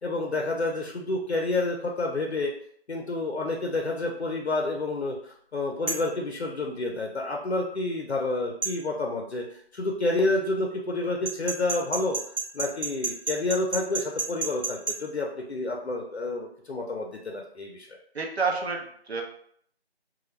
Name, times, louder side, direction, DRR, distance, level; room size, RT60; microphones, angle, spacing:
voice 1, 0.0-2.5 2.9-12.2 12.5-17.9, left 2 dB, 75° left, 0 dB, 0.5 m, -29 dB
sound 1, 5.9-6.1 8.6-8.8 11.2-15.0, right 4 dB, 55° right, 1.1 m, -30 dB
voice 2, 18.1-19.2, right 4 dB, 75° right, 0 dB, 0.7 m, -29 dB
2.2 x 2.0 x 3.0 m, 0.63 s
figure-of-eight pair, 175°, 33 cm